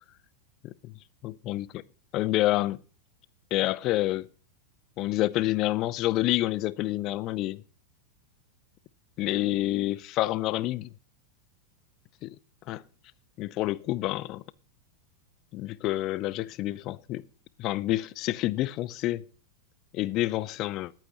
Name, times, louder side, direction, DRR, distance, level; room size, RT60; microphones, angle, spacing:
voice 1, 0.6-0.9 1.2-1.8 2.1-2.8 3.5-4.3 5.0-7.6 9.2-10.9 12.2-12.3 12.7-12.8 13.4-14.4 15.5-17.2 17.6-19.2 19.9-20.9, left 16 dB, 40° left, 0.5 m, -28 dB
20.5 x 8.9 x 2.9 m
figure-of-eight pair, 90°, 0 cm